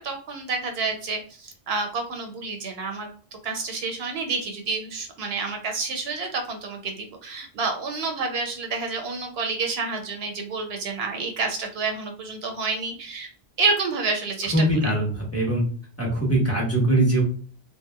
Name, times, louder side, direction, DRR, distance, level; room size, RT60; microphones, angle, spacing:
voice 1, 0.0-3.1 3.4-13.3 13.6-14.5 14.8-14.9, right 4 dB, 70° right, 4 dB, 0.8 m, -29 dB
voice 2, 14.5-15.6 16.0-17.2, right 1 dB, 15° left, -4 dB, 1.0 m, -22 dB
3.0 x 2.8 x 2.2 m, 0.44 s
omnidirectional pair, 1.1 m